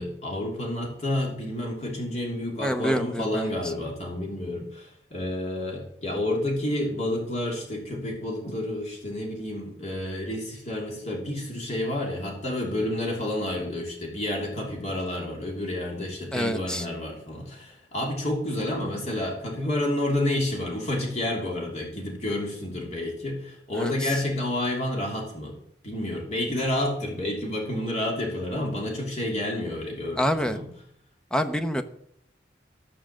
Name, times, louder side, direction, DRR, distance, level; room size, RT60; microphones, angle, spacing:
voice 1, 0.0-25.5 25.8-30.6, left 1 dB, 35° left, -1 dB, 2.9 m, -30 dB
voice 2, 2.6-3.7 16.3-16.9 23.7-24.2 30.2-30.6 31.3-31.8, equal, 5° left, 8 dB, 0.7 m, -27 dB
14.0 x 6.3 x 7.3 m, 0.71 s
head